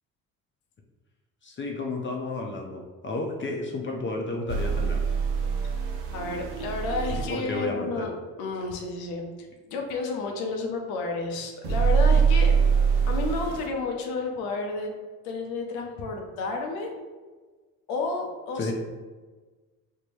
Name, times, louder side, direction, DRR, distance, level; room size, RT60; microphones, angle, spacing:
voice 1, 1.4-5.0 7.3-8.1 18.6-18.7, left 2 dB, 30° left, 1 dB, 0.6 m, -32 dB
sound 1, 4.5-7.3 11.6-13.7, right 6 dB, 85° right, 0.6 m, -23 dB
voice 2, 6.1-12.5 13.1-14.9 15.2-16.9 17.9-18.7, left 3 dB, 80° left, 2 dB, 0.7 m, -31 dB
4.4 x 2.2 x 3.1 m, 1.3 s
hypercardioid pair, 60°, 38 cm